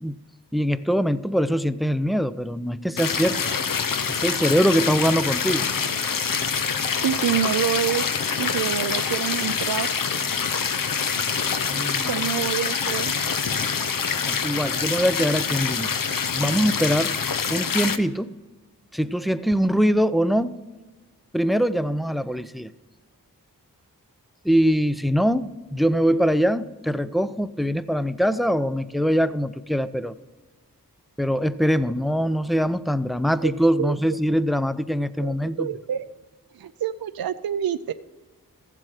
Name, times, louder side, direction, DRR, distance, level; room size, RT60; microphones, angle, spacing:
voice 1, 0.5-3.5 4.1-5.7 11.7-12.2 14.2-15.9 16.3-17.2 17.5-18.3 18.9-20.6 21.3-22.7 24.4-30.1 31.2-35.7, equal, ahead, 15 dB, 0.5 m, -23 dB
sound 1, 3.0-18.0, left 6 dB, 60° left, 0.8 m, -25 dB
voice 2, 7.0-8.1 8.4-9.9 12.0-13.1 33.4-33.5 33.8-34.0 35.2-36.1 36.5-37.9, right 10 dB, 75° right, 11 dB, 0.5 m, -27 dB
15.0 x 7.5 x 4.9 m, 1.3 s
cardioid pair, 45°, 37 cm